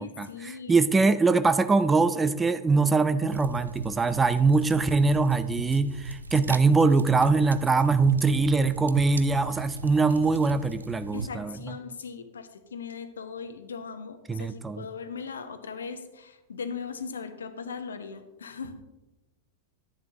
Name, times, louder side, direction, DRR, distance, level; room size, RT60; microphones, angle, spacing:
voice 1, 0.0-0.9 11.1-18.8, left 5 dB, 70° left, 9 dB, 0.9 m, -39 dB
voice 2, 0.7-11.5 14.3-14.9, right 4 dB, 15° right, 12 dB, 0.5 m, -23 dB
sound 1, 3.3-11.3, right 3 dB, 75° right, 0.4 m, -38 dB
11.0 x 10.5 x 2.9 m, 1.1 s
figure-of-eight pair, 90°, 0 cm